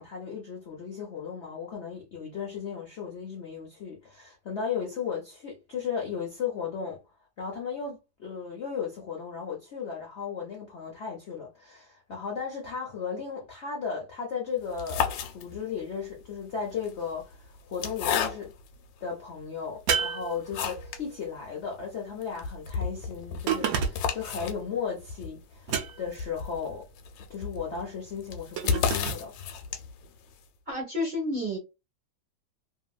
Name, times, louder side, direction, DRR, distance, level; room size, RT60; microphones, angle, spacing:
voice 1, 0.0-7.0 7.4-18.5 19.0-26.9 27.3-29.3, left 6 dB, 60° left, 0.7 m, -35 dB
sound 1, 14.6-15.8 16.7-18.8 19.4-19.5 19.9-21.1 21.4-21.5 21.8-21.9 22.2-30.1, left 7 dB, 90° left, 1.3 m, -32 dB
sound 2, 19.9-21.0 23.5-24.2 25.7-26.3 28.6-29.2, right 7 dB, 65° right, 0.9 m, -30 dB
voice 2, 30.7-31.6, left 1 dB, 35° right, 0.8 m, -30 dB
2.8 x 2.7 x 2.4 m
omnidirectional pair, 1.9 m